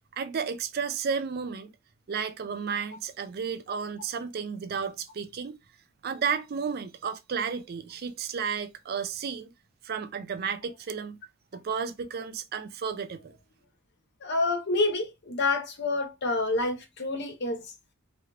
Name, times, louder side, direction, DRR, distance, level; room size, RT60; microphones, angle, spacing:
voice 1, 0.1-1.7 2.1-5.6 6.0-9.5 9.8-11.2 11.5-13.3, right 6 dB, 45° right, 0.4 m, -32 dB
voice 2, 14.2-17.6, left 2 dB, 55° left, 0.8 m, -28 dB
3.2 x 3.0 x 2.3 m
head